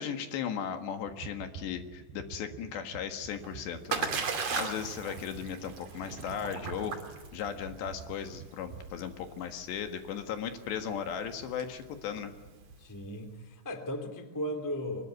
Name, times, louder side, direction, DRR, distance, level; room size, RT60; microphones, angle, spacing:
voice 1, 0.0-12.3, left 8 dB, 65° left, 7 dB, 3.5 m, -37 dB
sound 1, 1.0-9.1, right 8 dB, 75° right, 2.4 m, -49 dB
Splash splatter, 3.2-13.1, right 5 dB, 40° right, 2.9 m, -38 dB
voice 2, 12.8-15.1, equal, 10° left, 7 dB, 0.9 m, -36 dB
24.5 x 21.0 x 9.5 m, 1.3 s
omnidirectional pair, 5.8 m